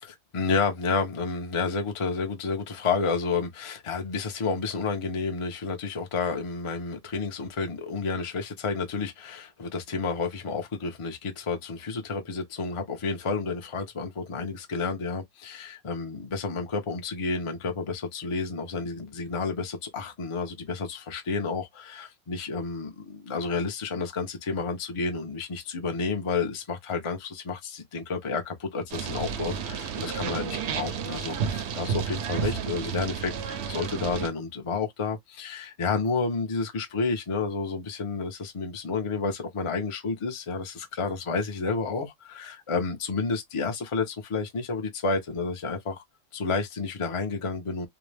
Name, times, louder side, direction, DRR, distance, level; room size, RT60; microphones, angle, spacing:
voice 1, 0.0-46.0 46.3-47.9, left 4 dB, 50° left, 0.3 m, -30 dB
sound 1, 28.9-34.3, right 7 dB, 65° right, 0.7 m, -31 dB
2.6 x 2.0 x 3.1 m
omnidirectional pair, 1.4 m